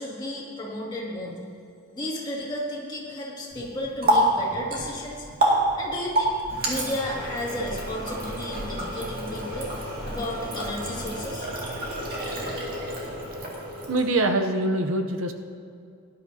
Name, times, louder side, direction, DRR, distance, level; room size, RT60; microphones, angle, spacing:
voice 1, 0.0-1.4 1.9-5.3 5.8-6.4 6.7-9.7 10.0-11.5, left 1 dB, 20° left, -4 dB, 2.2 m, -33 dB
Water tap faucet, 3.5-14.3, right 1 dB, 40° right, 2.1 m, -28 dB
voice 2, 13.9-15.3, right 2 dB, 60° right, 5 dB, 0.7 m, -24 dB
18.5 x 11.5 x 2.7 m, 2.3 s
head